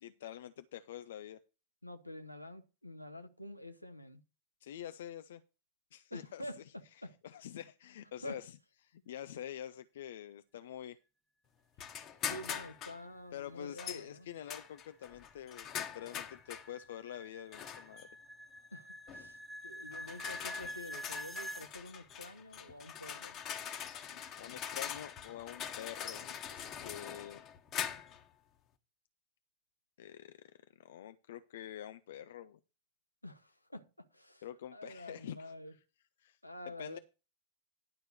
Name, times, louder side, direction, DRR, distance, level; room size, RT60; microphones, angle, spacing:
voice 1, 0.0-1.4 4.6-5.4 5.9-6.4 7.2-8.5 8.8-11.0 13.3-18.1 23.9-27.4 30.0-30.4 30.8-32.6 34.4-35.5 36.2-36.4 36.6-37.0, left 11 dB, 60° left, 0.4 m, -47 dB
voice 2, 1.8-4.2 6.1-7.2 8.2-8.4 12.3-14.3 18.7-23.4 33.2-34.5 34.7-35.7 36.4-37.0, left 1 dB, 85° left, 1.0 m, -48 dB
sound 1, 11.8-13.0 13.8-14.0 14.5-16.7 17.5-18.0 19.1-19.3 19.9-28.2, left 8 dB, 35° left, 1.2 m, -43 dB
sound 2, 14.8-21.7, equal, 5° right, 1.2 m, -47 dB
11.0 x 4.5 x 6.5 m
figure-of-eight pair, 90°, 0 cm